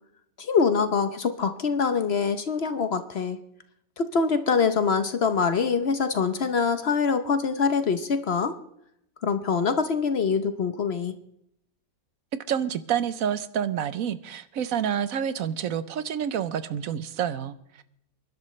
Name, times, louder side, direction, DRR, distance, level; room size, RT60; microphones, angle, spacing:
voice 1, 0.4-3.4 4.0-8.5 9.2-11.1, left 5 dB, 50° left, 10 dB, 1.0 m, -24 dB
voice 2, 12.5-17.8, right 9 dB, 70° right, 14 dB, 1.1 m, -28 dB
27.5 x 11.5 x 3.2 m, 0.76 s
omnidirectional pair, 1.5 m